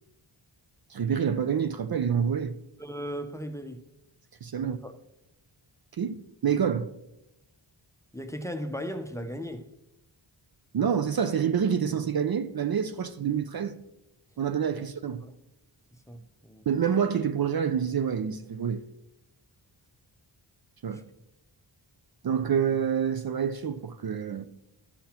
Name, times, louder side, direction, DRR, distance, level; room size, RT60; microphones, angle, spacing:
voice 1, 0.9-2.5 4.4-4.8 6.0-6.9 10.7-13.8 14.4-15.2 16.7-18.8 20.8-21.0 22.2-24.5, right 7 dB, 50° right, 0.5 m, -27 dB
voice 2, 2.8-3.8 4.6-5.0 8.1-9.7 14.7-14.9 15.2-15.3 16.1-16.6 20.9-21.0, equal, 5° left, 0.6 m, -37 dB
12.5 x 5.7 x 2.9 m
wide cardioid pair, 55°, 49 cm